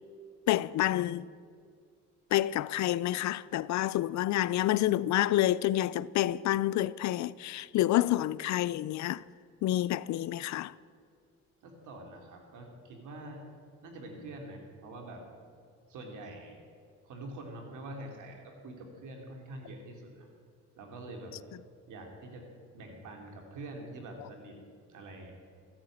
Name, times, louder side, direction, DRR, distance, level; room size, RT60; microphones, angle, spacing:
voice 1, 0.5-1.3 2.3-9.2 9.6-10.7, left 14 dB, 65° left, 0.4 m, -28 dB
voice 2, 11.6-13.5 13.8-15.3 15.9-16.6 17.0-20.3 20.8-21.3 21.9-22.5 22.7-24.6 24.9-25.3, right 2 dB, 80° right, 3.0 m, -45 dB
14.0 x 8.9 x 8.7 m
cardioid pair, 90°, 30 cm